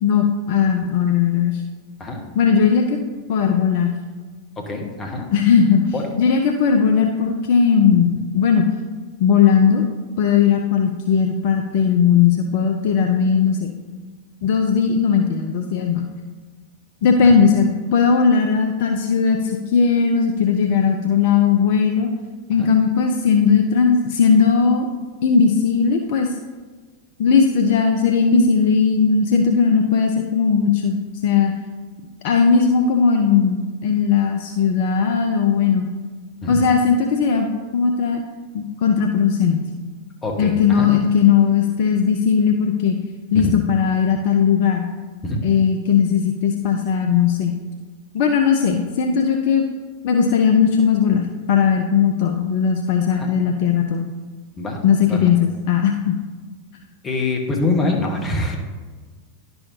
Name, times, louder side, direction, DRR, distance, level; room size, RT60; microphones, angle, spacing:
voice 1, 0.0-1.6 2.4-3.0 3.3-3.9 5.3-8.7 9.2-9.8 10.2-13.7 14.4-16.1 17.0-22.1 22.5-24.9 25.2-26.3 27.2-31.5 32.2-35.9 36.5-38.2 38.5-39.6 40.4-43.0 43.3-44.9 45.4-47.6 48.1-49.6 50.0-54.1 54.8-56.2, left 6 dB, 50° left, 4 dB, 0.5 m, -18 dB
voice 2, 4.6-5.3 5.9-6.0 22.6-22.7 36.4-36.6 40.2-40.9 43.3-43.5 45.2-45.4 53.1-53.3 54.6-55.3 57.0-58.6, left 2 dB, 20° left, 1 dB, 1.2 m, -25 dB
10.5 x 5.5 x 2.8 m, 1.4 s
figure-of-eight pair, 90°, 0 cm